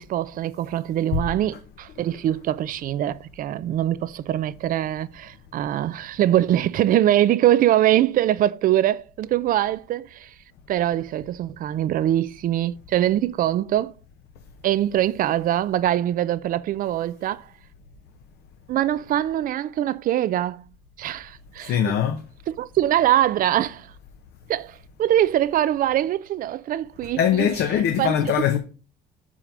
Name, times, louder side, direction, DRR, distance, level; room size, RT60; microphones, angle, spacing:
voice 1, 0.0-10.3 10.7-13.9 14.6-17.5 18.7-20.6 21.0-21.9 22.5-23.9 24.5-27.5 28.0-28.1, right 12 dB, 55° right, 0.5 m, -23 dB
voice 2, 21.6-22.3 27.2-28.6, left 9 dB, 70° left, 0.8 m, -22 dB
5.8 x 4.9 x 5.0 m
cardioid pair, 110°, 17 cm